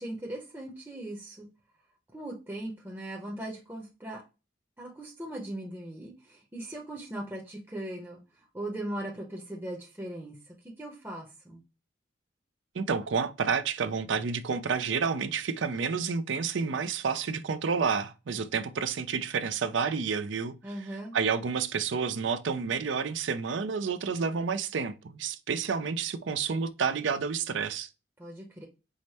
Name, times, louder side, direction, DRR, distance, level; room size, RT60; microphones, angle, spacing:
voice 1, 0.0-1.5 2.1-4.2 4.8-11.6 20.6-21.2 28.2-28.7, right 1 dB, 10° right, 0.7 m, -39 dB
voice 2, 12.7-20.5 21.1-27.9, right 5 dB, 70° right, 0.5 m, -30 dB
4.9 x 2.1 x 4.1 m
head